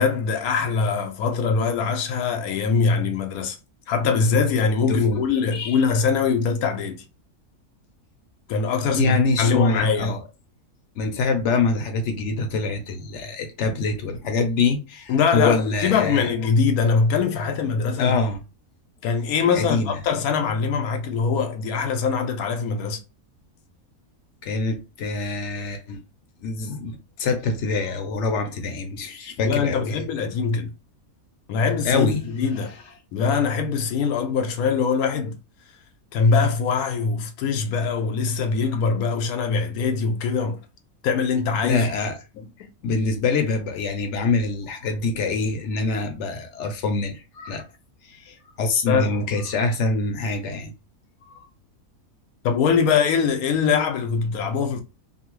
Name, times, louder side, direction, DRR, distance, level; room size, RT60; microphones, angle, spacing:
voice 1, 0.0-3.6 3.9-7.0 8.5-10.2 15.1-18.1 19.0-23.0 29.4-30.7 31.5-32.7 33.1-35.4 36.1-40.6 41.0-41.9 42.4-42.5 48.9-49.2 52.4-54.8, left 5 dB, 90° left, 1.1 m, -22 dB
voice 2, 4.9-5.2 5.5-5.8 8.9-10.2 11.0-16.3 18.0-18.4 19.5-20.0 24.4-26.0 26.4-30.0 31.8-32.2 32.6-32.7 41.6-42.1 42.8-47.6 48.0-50.7 51.3-51.4, left 3 dB, 60° left, 0.9 m, -25 dB
2.7 x 2.5 x 3.0 m
omnidirectional pair, 1.5 m